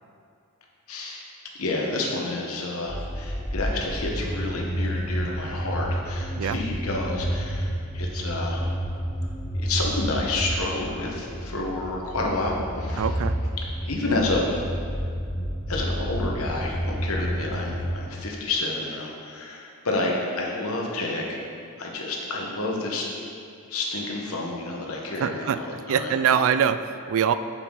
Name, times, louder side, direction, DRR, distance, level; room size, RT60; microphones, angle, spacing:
voice 1, 0.9-1.3 1.5-8.7 9.5-13.1 13.8-14.6 15.7-21.4 21.8-23.1 23.7-26.1, left 2 dB, 70° left, -1 dB, 1.2 m, -29 dB
sound 1, 2.9-18.0, equal, 10° left, 0.6 m, -30 dB
voice 2, 13.0-13.4 25.2-25.6 25.9-27.3, right 7 dB, 65° right, 12 dB, 0.3 m, -23 dB
7.1 x 7.0 x 3.8 m, 2.3 s
head